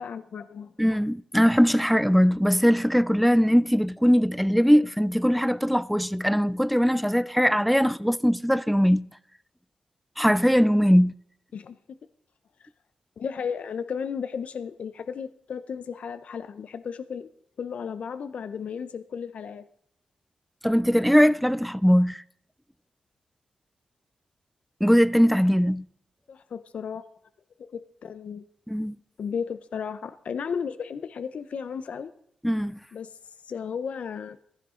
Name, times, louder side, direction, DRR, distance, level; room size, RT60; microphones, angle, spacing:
voice 1, 0.0-0.7 11.5-12.0 12.6-12.7 13.2-17.3 17.6-19.7 26.3-27.0 27.6-28.4 29.2-32.1 32.9-33.2 33.4-34.4, left 6 dB, 70° left, 0.7 m, -34 dB
voice 2, 0.8-9.1 10.2-11.1 20.6-22.2 24.8-25.8 28.7-29.0 32.4-32.8, equal, ahead, 0.4 m, -21 dB
15.0 x 15.0 x 3.8 m
wide cardioid pair, 100°, 2 cm